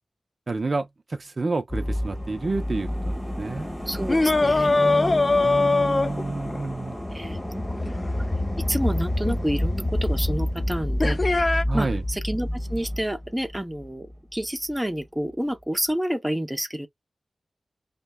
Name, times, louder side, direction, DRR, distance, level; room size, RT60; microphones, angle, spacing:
voice 1, 0.5-3.7 5.4-7.0 11.7-12.0, right 3 dB, 50° right, 0.6 m, -29 dB
sound 1, 1.7-14.1 14.4-14.5, left 1 dB, 10° left, 1.3 m, -29 dB
voice 2, 3.9-5.8 7.1-7.4 7.8-8.3 8.7-16.9, equal, 10° right, 0.7 m, -29 dB
sound 2, 4.1-6.7 9.3-9.4 11.0-11.6, left 3 dB, 40° left, 0.4 m, -21 dB
5.2 x 2.1 x 2.2 m
wide cardioid pair, 70°, 0 cm